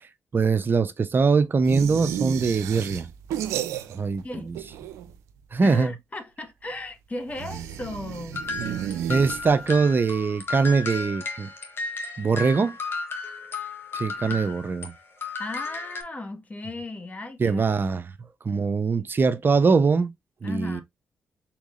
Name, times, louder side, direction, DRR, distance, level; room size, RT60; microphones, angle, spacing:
voice 1, 0.0-3.1 3.9-4.6 5.5-5.9 9.1-11.5 12.2-12.8 13.9-14.9 17.4-18.1 18.4-20.1 20.4-20.8, right 4 dB, 45° right, 0.7 m, -22 dB
sound 1, 1.6-4.2 4.5-5.3 7.3-9.8, right 10 dB, 85° right, 0.5 m, -32 dB
voice 2, 5.6-8.5 14.2-14.4 15.4-17.6 20.4-20.8, left 2 dB, 30° left, 1.4 m, -36 dB
sound 2, 8.3-14.9 15.2-16.0, left 3 dB, 50° left, 1.6 m, -34 dB
4.6 x 3.6 x 2.5 m
supercardioid pair, 50°, 5 cm